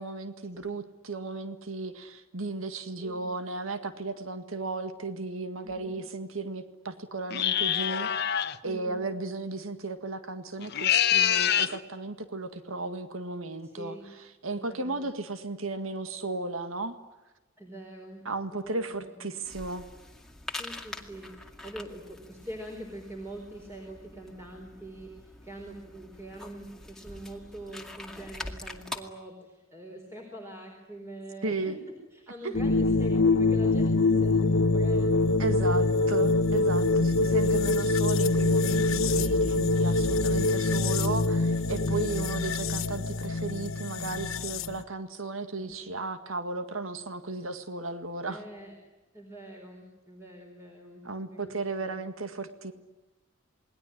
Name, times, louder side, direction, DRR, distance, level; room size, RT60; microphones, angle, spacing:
voice 1, 0.0-14.0 14.4-17.0 18.3-19.9 31.4-31.8 32.4-32.5 35.4-48.4 51.0-52.7, right 3 dB, 80° right, 9 dB, 1.9 m, -35 dB
voice 2, 3.0-3.3 5.6-6.0 8.6-9.1 13.6-14.1 14.5-15.1 17.6-18.2 18.5-19.2 20.5-36.2 41.8-42.3 45.5-46.0 48.3-48.7 49.1-51.6 51.8-52.0, right 1 dB, 15° right, 1 dB, 4.4 m, -44 dB
sound 1, 7.3-8.6 10.6-11.8, left 10 dB, 50° left, 1.1 m, -25 dB
sound 2, 19.4-29.0, left 2 dB, ahead, 2.3 m, -44 dB
sound 3, 32.5-44.8, left 2 dB, 75° left, 1.1 m, -24 dB
28.0 x 21.0 x 10.0 m, 1.1 s
head